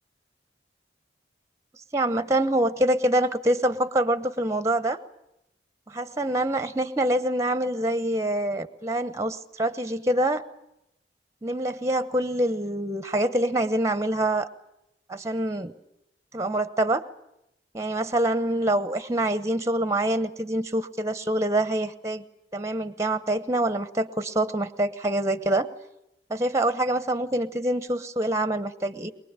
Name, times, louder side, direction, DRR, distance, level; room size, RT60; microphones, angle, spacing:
voice 1, 1.9-5.0 5.9-10.4 11.4-14.5 15.1-15.7 16.3-17.0 17.7-22.2 22.5-25.7 26.3-29.1, right 1 dB, 15° right, 13 dB, 0.9 m, -25 dB
23.0 x 21.5 x 8.9 m, 0.84 s
head